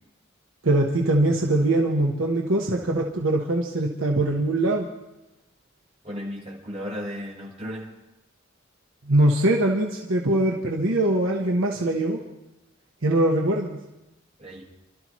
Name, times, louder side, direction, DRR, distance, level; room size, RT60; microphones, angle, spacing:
voice 1, 0.6-4.9 9.1-12.2 13.0-13.8, right 1 dB, 70° right, 0 dB, 1.3 m, -22 dB
voice 2, 6.0-7.9 14.4-14.6, equal, 35° right, -3 dB, 4.1 m, -34 dB
28.5 x 13.0 x 3.1 m, 0.95 s
head